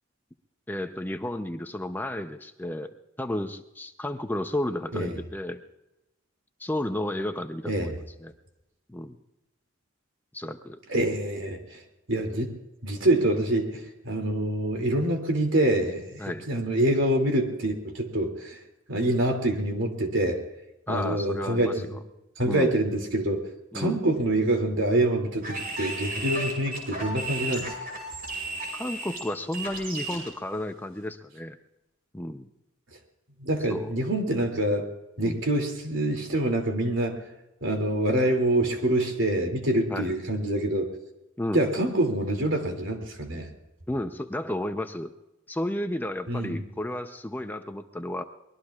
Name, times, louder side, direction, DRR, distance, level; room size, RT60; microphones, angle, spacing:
voice 1, 0.7-5.6 6.6-8.3 8.9-9.2 10.3-10.8 16.2-16.5 20.9-22.0 22.4-22.7 23.7-24.0 28.7-31.6 32.1-32.5 33.7-33.9 35.2-35.4 39.9-40.1 41.4-41.7 43.9-45.1 45.5-48.2, left 1 dB, 10° left, 7 dB, 0.6 m, -32 dB
voice 2, 10.9-11.8 12.1-12.5 12.8-18.6 18.9-20.4 20.9-22.0 22.4-23.4 23.7-27.7 33.4-34.9 35.2-37.2 37.6-40.9 41.5-43.5 46.3-46.7, right 1 dB, 70° right, 3 dB, 2.6 m, -26 dB
sound 1, 25.4-30.3, right 2 dB, 45° right, 5.9 m, -34 dB
24.0 x 21.0 x 2.4 m, 0.95 s
head